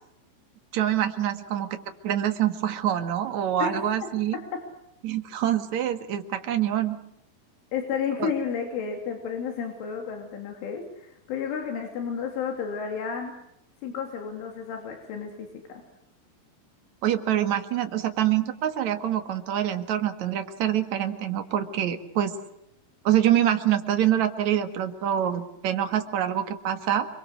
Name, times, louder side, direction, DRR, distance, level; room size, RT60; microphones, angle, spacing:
voice 1, 0.7-1.8 2.0-4.4 5.0-7.0 8.2-8.3 17.0-22.3 23.0-27.1, right 11 dB, 55° right, 7 dB, 2.3 m, -25 dB
voice 2, 7.7-13.3 13.8-15.8, left 6 dB, 85° left, 2 dB, 5.3 m, -32 dB
29.0 x 23.0 x 6.4 m, 0.78 s
omnidirectional pair, 5.4 m